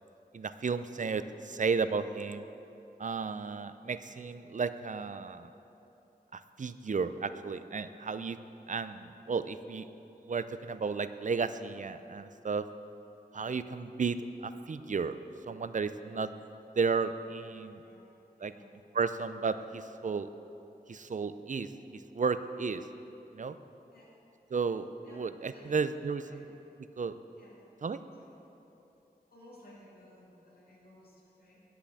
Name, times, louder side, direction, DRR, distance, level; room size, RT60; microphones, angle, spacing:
voice 1, 0.3-2.4 3.0-5.5 6.3-8.4 8.7-9.9 10.3-12.7 13.3-15.2 15.5-16.3 16.8-17.8 18.4-18.5 18.9-20.3 20.9-22.9 23.3-23.6 24.5-26.5 27.0-27.2 27.8-28.0, right 5 dB, 50° right, 12 dB, 0.5 m, -33 dB
voice 2, 18.4-18.7 23.9-24.1 25.0-25.2 25.5-26.4 27.4-27.7 28.1-28.3 29.3-31.6, left 1 dB, 70° left, -5 dB, 2.7 m, -57 dB
10.5 x 5.9 x 8.2 m, 2.9 s
wide cardioid pair, 55°, 16 cm